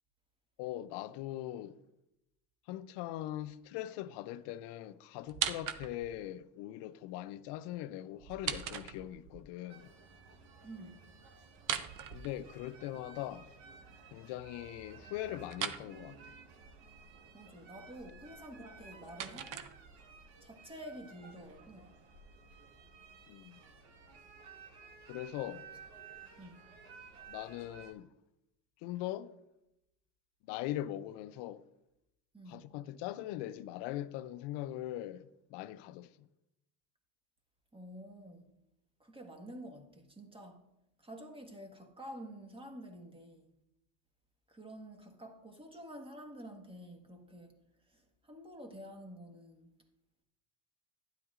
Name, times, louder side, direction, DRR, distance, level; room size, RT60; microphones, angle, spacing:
voice 1, 0.6-1.8 2.7-9.9 12.1-13.5 14.1-16.2 23.3-23.6 25.1-25.6 27.3-28.1 28.8-29.3 30.5-31.6 32.5-36.1, left 13 dB, 70° left, 0.6 m, -41 dB
sound 1, 5.3-6.2 8.2-9.4 11.6-12.9 15.5-15.9 18.6-20.2, right 9 dB, 45° right, 0.7 m, -39 dB
sound 2, 9.7-27.9, right 5 dB, 75° right, 1.6 m, -55 dB
voice 2, 10.6-11.0 17.3-19.7 20.4-21.9 26.4-26.6 32.3-32.6 37.7-38.5 39.0-40.6 41.0-43.5 44.5-47.5 47.9-49.7, equal, 10° right, 1.5 m, -49 dB
12.0 x 10.0 x 2.5 m
supercardioid pair, 90°, 44 cm